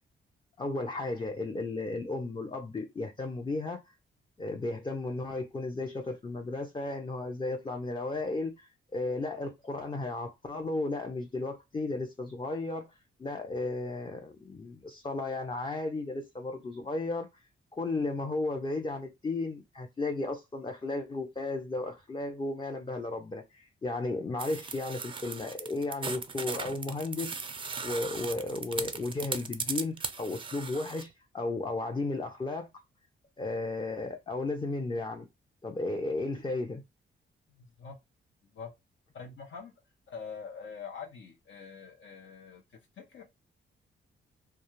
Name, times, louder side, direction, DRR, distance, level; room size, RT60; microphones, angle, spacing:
voice 1, 0.6-3.8 4.4-12.9 13.2-17.4 17.7-27.4 27.8-32.7 33.4-35.3 35.6-36.8, left 2 dB, 25° left, 0.5 m, -34 dB
sound 1, 24.4-31.0, right 4 dB, 25° right, 0.4 m, -38 dB
voice 2, 37.6-38.0 38.5-38.7 39.1-39.7 40.1-42.6 43.0-43.2, left 6 dB, 65° left, 0.7 m, -44 dB
2.4 x 2.3 x 3.0 m
cardioid pair, 75°, 21 cm